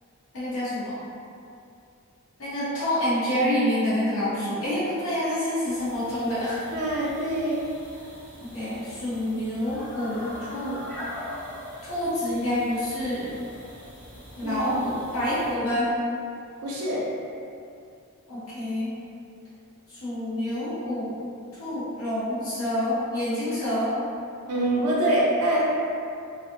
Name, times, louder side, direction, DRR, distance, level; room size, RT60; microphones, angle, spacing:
voice 1, 0.3-1.0 2.4-6.6 8.4-10.9 11.8-13.4 14.4-15.9 18.3-19.0 19.9-21.2 21.6-24.0, left 1 dB, 70° left, -11 dB, 0.9 m, -27 dB
sound 1, 5.7-15.6, left 1 dB, 10° left, 0.5 m, -42 dB
voice 2, 6.7-7.6 14.4-14.8 16.6-17.0 24.5-25.6, right 1 dB, 80° right, -5 dB, 0.5 m, -25 dB
2.5 x 2.4 x 2.6 m, 2.5 s
head